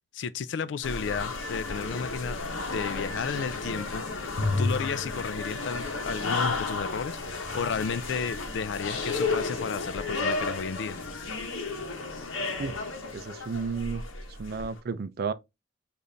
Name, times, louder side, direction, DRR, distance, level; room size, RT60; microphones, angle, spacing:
voice 1, 0.1-2.4 2.7-4.0 4.6-11.0, left 6 dB, 60° left, 0.3 m, -33 dB
sound 1, 0.8-14.7, left 3 dB, 85° left, 0.9 m, -32 dB
voice 2, 13.1-14.0 14.4-15.3, right 5 dB, 50° right, 0.4 m, -32 dB
6.8 x 2.5 x 2.6 m
head